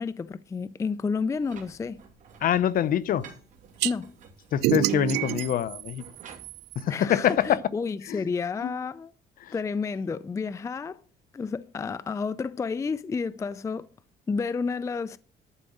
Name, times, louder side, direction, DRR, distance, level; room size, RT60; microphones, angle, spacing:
voice 1, 0.0-2.0 3.8-4.1 6.9-9.1 9.5-11.0 11.3-13.9 14.3-15.2, left 5 dB, 20° left, 0.4 m, -30 dB
sound 1, 1.4-7.6, right 6 dB, 50° right, 2.6 m, -50 dB
voice 2, 2.4-3.2 4.5-6.0 6.8-7.6 8.1-8.2 8.6-8.7 9.4-9.5, left 10 dB, 55° left, 0.7 m, -25 dB
sound 2, 3.8-3.9 4.6-6.8, right 16 dB, 90° right, 0.5 m, -28 dB
11.0 x 5.1 x 7.8 m
cardioid pair, 110°, 17 cm